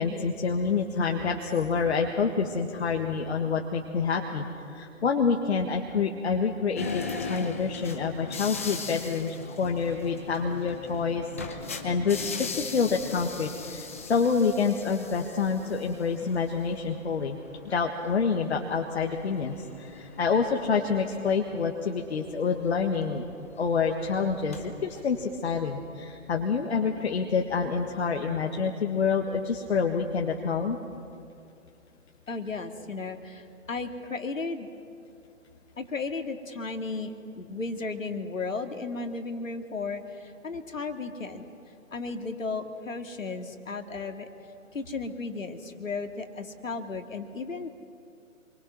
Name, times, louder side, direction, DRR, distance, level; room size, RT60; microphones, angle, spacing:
voice 1, 0.0-17.4 17.6-23.2 23.6-30.8, left 5 dB, 50° left, 2 dB, 1.7 m, -27 dB
sound 1, 6.8-25.3, left 4 dB, 10° left, 0.5 m, -41 dB
voice 2, 32.3-34.7 35.8-41.4 41.9-44.3 44.7-47.7, left 3 dB, 70° left, 6 dB, 2.3 m, -34 dB
27.5 x 23.5 x 6.2 m, 2.6 s
figure-of-eight pair, 130°, 40 cm